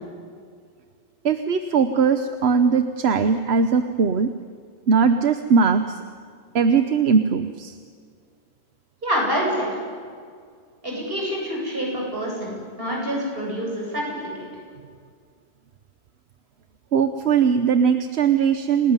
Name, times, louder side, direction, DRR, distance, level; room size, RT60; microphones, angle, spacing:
voice 1, 1.2-4.3 4.9-6.0 6.5-7.8 16.9-18.9, right 6 dB, 90° right, 9 dB, 1.2 m, -20 dB
voice 2, 9.0-9.7 10.8-14.5, equal, 65° right, -2 dB, 8.4 m, -27 dB
29.0 x 19.0 x 9.8 m, 2.1 s
omnidirectional pair, 1.0 m